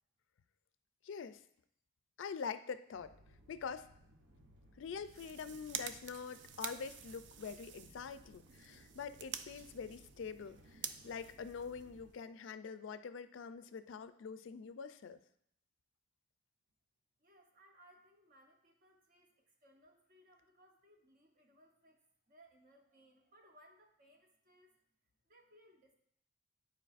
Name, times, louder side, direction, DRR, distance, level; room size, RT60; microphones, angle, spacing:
voice 1, 1.0-1.4 2.2-3.1 3.5-3.9 4.8-15.2, left 6 dB, 70° left, 12 dB, 0.4 m, -45 dB
sound 1, 2.9-12.1, equal, 85° right, 0.9 m, -63 dB
sound 2, 5.0-12.2, right 8 dB, 60° right, 0.4 m, -49 dB
voice 2, 17.2-24.8 25.3-25.9, equal, 45° right, 2 dB, 1.0 m, -65 dB
9.9 x 4.7 x 2.5 m, 0.70 s
head